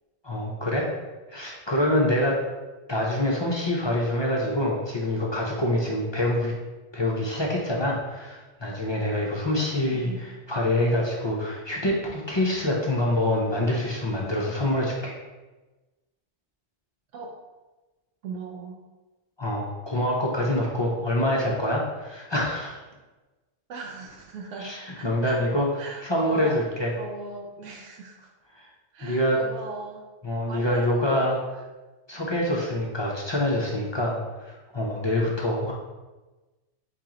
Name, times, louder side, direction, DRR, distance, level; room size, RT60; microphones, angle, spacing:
voice 1, 0.2-0.9 1.3-2.4 2.9-6.6 6.9-15.2 19.4-22.8 24.6-25.7 26.0-26.9 28.6-28.7 29.0-29.4 30.2-31.4 32.1-35.7, left 1 dB, 35° left, -3 dB, 0.4 m, -26 dB
voice 2, 9.8-10.2 17.1-17.3 18.2-18.8 23.7-25.4 25.8-26.6 27.0-28.3 28.9-30.0 30.5-31.4, right 3 dB, 85° right, 0 dB, 0.9 m, -38 dB
4.7 x 3.0 x 3.7 m, 1.2 s
omnidirectional pair, 1.2 m